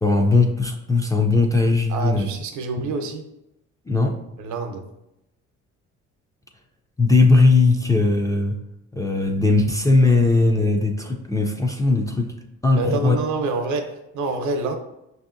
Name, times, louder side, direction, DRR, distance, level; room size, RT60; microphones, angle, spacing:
voice 1, 0.0-2.3 2.8-2.9 3.9-4.1 7.0-8.6 8.9-12.3 12.6-13.2, left 3 dB, 10° left, 1 dB, 0.3 m, -18 dB
voice 2, 1.9-3.3 4.4-4.9 12.8-14.8, right 3 dB, 70° right, 6 dB, 0.7 m, -27 dB
5.4 x 2.6 x 2.5 m, 0.90 s
cardioid pair, 110°, 30 cm